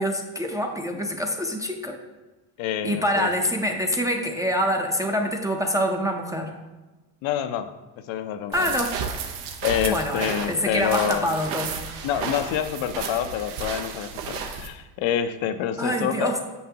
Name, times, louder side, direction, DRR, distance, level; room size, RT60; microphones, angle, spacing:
voice 1, 0.0-2.0 2.8-6.5 8.5-9.0 9.9-12.0 15.8-16.4, equal, 5° right, 1 dB, 0.4 m, -26 dB
voice 2, 2.6-3.3 7.2-7.7 8.1-8.7 9.6-11.3 12.0-16.4, left 9 dB, 65° left, 9 dB, 0.6 m, -27 dB
sound 1, 8.5-14.7, right 6 dB, 85° right, 0.9 m, -33 dB
6.5 x 5.7 x 2.8 m, 1.2 s
cardioid pair, 100°, 50 cm